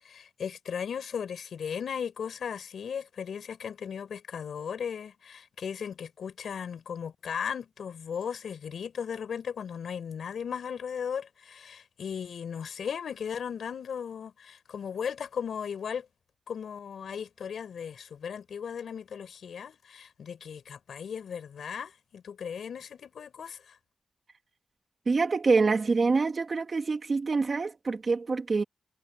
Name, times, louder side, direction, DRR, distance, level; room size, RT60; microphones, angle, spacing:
voice 1, 0.0-16.1 16.5-23.8, left 7 dB, 70° left, 5.2 m, -37 dB
voice 2, 25.1-28.6, right 4 dB, 35° right, 2.2 m, -26 dB
wide cardioid pair, 160°, 0 cm